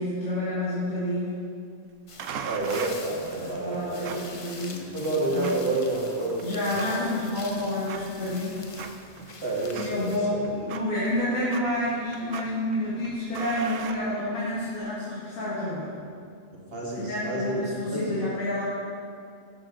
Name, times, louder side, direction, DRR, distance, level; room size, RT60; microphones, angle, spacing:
voice 1, 0.0-1.4 3.4-5.0 5.3-5.5 6.4-8.6 9.8-15.9 16.9-18.6, left 1 dB, 85° left, -10 dB, 2.3 m, -29 dB
sound 1, 2.1-10.2, left 4 dB, 40° left, 0.5 m, -45 dB
sound 2, 2.2-14.7, right 6 dB, 75° right, 1.0 m, -42 dB
voice 2, 2.4-4.4 4.9-7.1 9.4-10.5 16.5-17.6 17.9-18.3, right 2 dB, 45° right, -4 dB, 1.9 m, -30 dB
12.0 x 6.6 x 3.8 m, 2.3 s
omnidirectional pair, 1.4 m